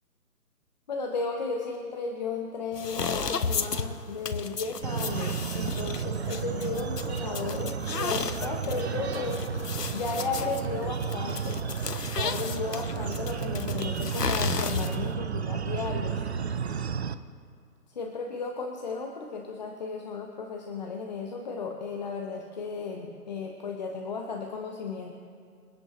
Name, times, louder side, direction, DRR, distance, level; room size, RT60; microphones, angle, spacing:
voice 1, 0.9-11.6 12.1-16.2 17.9-25.1, left 4 dB, 30° left, 2 dB, 0.9 m, -34 dB
sound 1, 2.7-15.1, left 5 dB, 85° left, 1.0 m, -34 dB
sound 2, 4.8-17.1, right 6 dB, 45° right, 0.6 m, -32 dB
26.5 x 9.0 x 3.1 m, 2.2 s
figure-of-eight pair, 145°, 47 cm